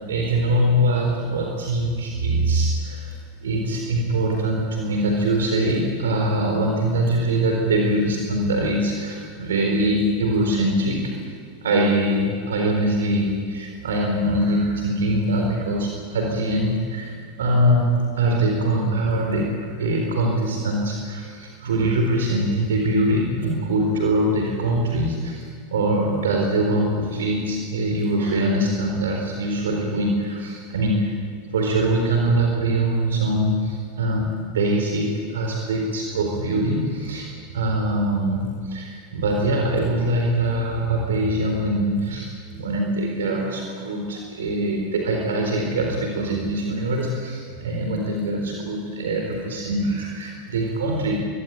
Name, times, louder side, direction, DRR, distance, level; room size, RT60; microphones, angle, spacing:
voice 1, 0.1-11.0 11.6-19.5 19.8-25.4 25.7-31.1 31.5-37.3 37.5-51.2, right 1 dB, 70° right, 1 dB, 4.1 m, -23 dB
24.0 x 22.5 x 8.5 m, 2.1 s
figure-of-eight pair, 85°, 0 cm